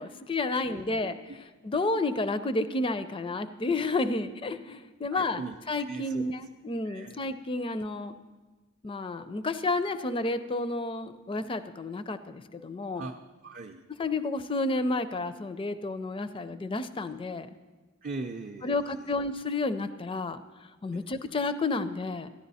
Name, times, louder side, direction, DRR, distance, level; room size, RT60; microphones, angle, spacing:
voice 1, 0.0-1.1 1.6-5.4 5.7-8.2 8.8-13.1 14.0-17.5 18.6-20.4 20.8-22.3, left 2 dB, 25° left, 12 dB, 0.4 m, -31 dB
voice 2, 0.6-1.4 5.1-5.6 5.9-6.2 6.9-7.2 12.9-13.2 13.4-13.8 18.0-18.9 20.9-21.0, right 3 dB, 40° right, 1 dB, 0.5 m, -40 dB
14.0 x 11.0 x 4.1 m, 1.3 s
head